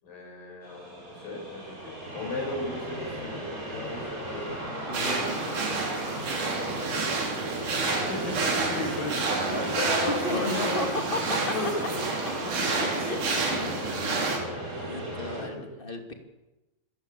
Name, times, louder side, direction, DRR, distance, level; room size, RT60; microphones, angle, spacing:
voice 1, 0.0-4.4 5.1-5.2 5.5-5.8 7.9-10.7 11.5-12.0 15.4-15.6, left 2 dB, 80° left, -1 dB, 8.1 m, -35 dB
sound 1, 0.6-15.4, right 1 dB, 25° right, 5.4 m, -36 dB
voice 2, 4.9-5.2 10.2-10.9 11.1-11.5 12.7-13.2 13.5-13.8 14.0-14.3 14.8-16.1, left 2 dB, 15° left, 4 dB, 2.2 m, -34 dB
sound 2, 4.9-14.4, right 3 dB, 65° right, 4.9 m, -29 dB
26.5 x 15.5 x 8.5 m, 1.0 s
omnidirectional pair, 3.9 m